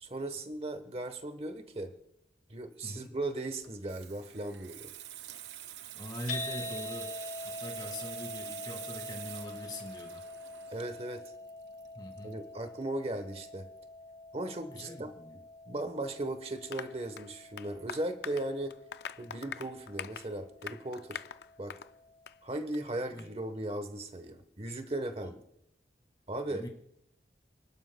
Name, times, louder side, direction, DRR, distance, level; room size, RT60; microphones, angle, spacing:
voice 1, 0.0-1.9 2.5-4.9 10.7-11.2 12.2-13.7 14.3-15.1 15.7-18.8 19.2-21.2 21.6-21.8 22.4-25.4 26.3-26.7, right 1 dB, 35° right, 9 dB, 1.1 m, -37 dB
voice 2, 2.8-3.2 5.9-10.2 12.0-12.4 14.7-15.4 23.2-23.3 25.2-25.3 26.5-26.7, left 1 dB, 25° left, 3 dB, 1.9 m, -43 dB
Water tap faucet / Sink (filling or washing), 3.5-12.8 13.1-13.4, right 12 dB, 75° right, 0.5 m, -46 dB
sound 1, 6.3-22.5, left 2 dB, 50° left, 4.9 m, -46 dB
Applause, 16.7-21.9 22.3-22.4 22.7-22.8 23.2-23.3, left 7 dB, 65° left, 0.4 m, -44 dB
29.5 x 12.0 x 2.2 m, 0.79 s
head